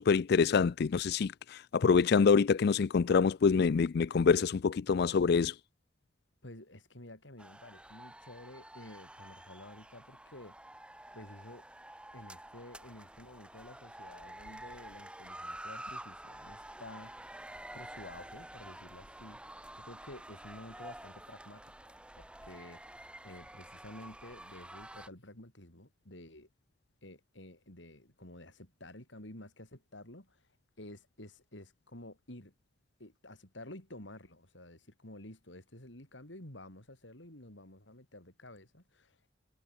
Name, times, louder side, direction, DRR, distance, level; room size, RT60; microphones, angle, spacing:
voice 1, 0.0-5.6, left 5 dB, 60° left, 0.4 m, -26 dB
voice 2, 6.4-10.6 11.1-11.6 12.1-17.4 17.7-19.4 19.8-26.5 27.0-30.5 30.8-32.5 33.0-39.3, left 1 dB, 75° left, 6.1 m, -51 dB
sound 1, 7.4-25.1, right 1 dB, 5° right, 2.9 m, -49 dB
head